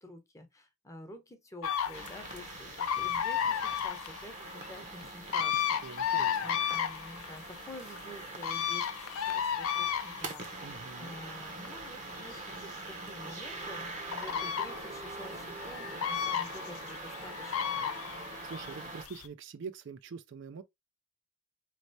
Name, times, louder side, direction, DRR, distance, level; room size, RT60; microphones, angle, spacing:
voice 1, 0.0-17.8, left 1 dB, 15° left, 0.8 m, -49 dB
sound 1, 1.6-19.3, left 8 dB, 80° left, 0.5 m, -34 dB
sound 2, 1.9-19.1, right 3 dB, 35° right, 0.8 m, -44 dB
voice 2, 5.8-6.3 10.6-11.2 18.2-20.6, right 5 dB, 55° right, 0.4 m, -45 dB
4.2 x 3.2 x 2.6 m
head